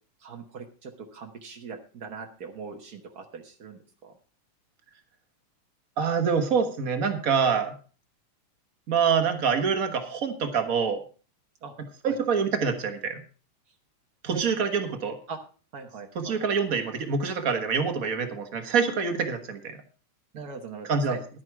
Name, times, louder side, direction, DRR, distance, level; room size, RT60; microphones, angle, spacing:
voice 1, 0.2-4.1 11.6-11.7 12.1-12.2 14.3-14.5 15.3-15.4 15.7-16.4 20.3-21.2, right 5 dB, 85° right, 3 dB, 0.8 m, -41 dB
voice 2, 6.0-7.7 8.9-11.0 12.0-13.2 14.2-15.2 16.1-19.8 20.9-21.1, right 6 dB, 50° right, 6 dB, 1.0 m, -26 dB
11.5 x 9.6 x 4.6 m, 0.37 s
omnidirectional pair, 3.5 m